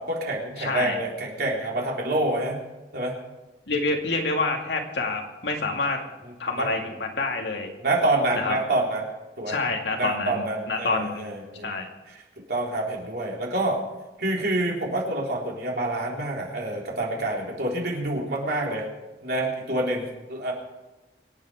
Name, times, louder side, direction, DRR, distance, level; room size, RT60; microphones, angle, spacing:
voice 1, 0.0-2.6 2.9-3.2 6.6-6.7 7.8-9.1 9.4-9.6 9.9-11.8 12.5-13.8 14.2-18.9 19.2-20.5, right 2 dB, 65° right, -2 dB, 3.7 m, -27 dB
voice 2, 0.6-1.0 3.7-6.0 6.4-7.7 8.3-8.6 9.5-11.2 11.6-11.9, left 3 dB, 75° left, 2 dB, 2.3 m, -27 dB
25.0 x 9.0 x 5.0 m, 1.1 s
head